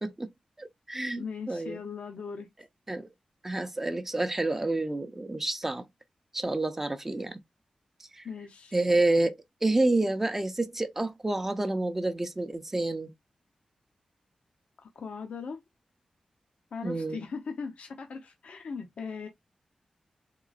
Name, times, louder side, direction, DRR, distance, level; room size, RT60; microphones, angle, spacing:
voice 1, 0.6-1.8 2.9-3.1 3.4-5.9 6.3-7.4 8.1-8.3 8.7-13.1 16.8-17.2, right 2 dB, 15° right, 0.5 m, -29 dB
voice 2, 1.2-2.5 8.2-8.8 14.8-15.6 16.7-19.3, left 5 dB, 75° left, 0.6 m, -39 dB
3.9 x 3.7 x 2.3 m
wide cardioid pair, 170°, 2 cm